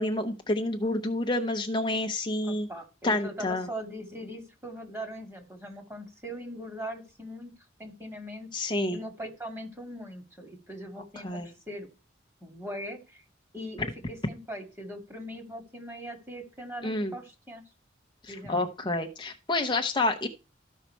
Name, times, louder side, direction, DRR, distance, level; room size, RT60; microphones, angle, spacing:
voice 1, 0.0-2.7 3.0-3.7 8.5-9.0 11.2-11.5 16.8-17.1 18.2-20.3, left 2 dB, 25° left, 4 dB, 0.7 m, -29 dB
voice 2, 2.4-7.5 7.8-8.5 8.9-11.9 12.4-13.2 13.5-17.6 18.3-18.6, equal, 15° right, 4 dB, 2.1 m, -40 dB
13.5 x 5.6 x 4.4 m, 0.32 s
head